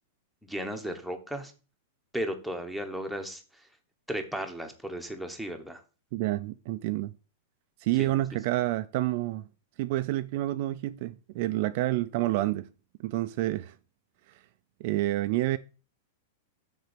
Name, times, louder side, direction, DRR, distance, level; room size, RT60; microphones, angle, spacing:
voice 1, 0.4-1.5 2.1-3.7 4.1-5.8 8.0-8.1, equal, ahead, 1.0 m, -35 dB
voice 2, 6.1-7.1 7.8-9.5 9.8-12.7 13.0-13.7 14.8-15.6, right 16 dB, 45° right, 0.4 m, -28 dB
6.7 x 4.4 x 6.6 m
supercardioid pair, 160°, 0 cm